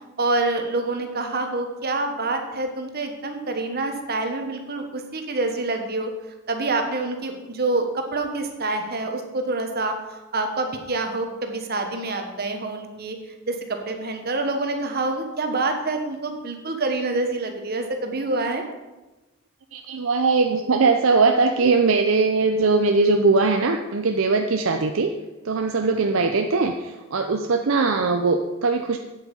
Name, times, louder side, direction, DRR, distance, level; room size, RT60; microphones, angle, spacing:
voice 1, 0.2-6.1 6.5-13.2 13.5-18.6, right 2 dB, 50° right, 4 dB, 1.3 m, -27 dB
voice 2, 19.7-25.1 25.4-29.0, right 4 dB, 70° right, 4 dB, 0.6 m, -20 dB
8.8 x 8.2 x 5.4 m, 1.1 s
head